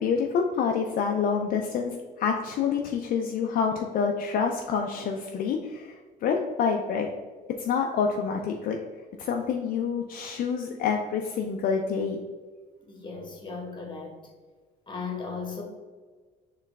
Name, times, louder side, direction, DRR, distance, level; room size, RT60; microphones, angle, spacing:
voice 1, 0.0-7.1 7.6-8.8 9.2-12.2, left 6 dB, 60° left, 2 dB, 0.5 m, -27 dB
voice 2, 12.8-14.2 14.9-15.6, left 4 dB, 25° left, 1 dB, 1.2 m, -36 dB
4.5 x 3.1 x 3.4 m, 1.4 s
cardioid pair, 110°, 17 cm